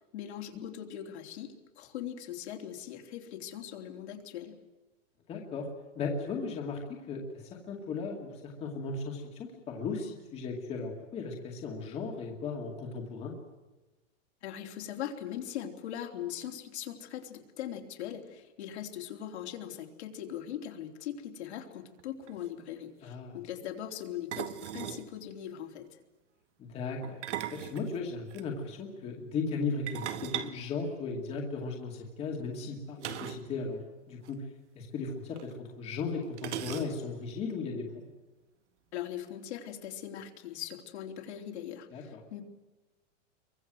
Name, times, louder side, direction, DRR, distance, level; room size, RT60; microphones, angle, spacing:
voice 1, 0.1-4.6 14.4-25.9 38.9-42.4, left 10 dB, 60° left, 3 dB, 3.4 m, -40 dB
voice 2, 5.3-5.7 6.0-13.3 23.0-23.4 26.6-27.2 27.5-33.8 34.1-34.4 34.8-38.1 41.9-42.2, left 4 dB, 15° left, 0 dB, 2.2 m, -36 dB
sound 1, 22.0-22.1 22.3-22.5 24.3-25.1 27.0-28.4 29.9-31.5 33.0-33.5 33.8-33.9 34.2-34.3 35.4-35.5 36.4-37.2, right 10 dB, 65° right, 2.0 m, -38 dB
28.0 x 23.5 x 7.8 m, 1.1 s
supercardioid pair, 180°, 37 cm